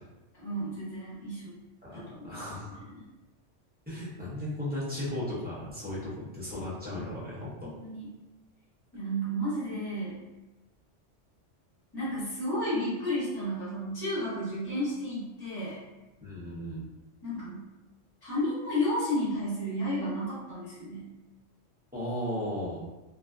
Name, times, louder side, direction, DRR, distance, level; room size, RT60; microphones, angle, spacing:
voice 1, 0.3-1.5 1.9-3.0 7.6-8.1 8.9-10.2 11.9-15.8 17.2-17.7 18.2-21.1, equal, 20° left, -10 dB, 1.0 m, -32 dB
voice 2, 1.8-2.8 3.9-7.7 16.2-16.8 21.9-22.8, left 1 dB, 10° right, -9 dB, 0.5 m, -36 dB
2.4 x 2.3 x 2.2 m, 1.0 s
omnidirectional pair, 1.3 m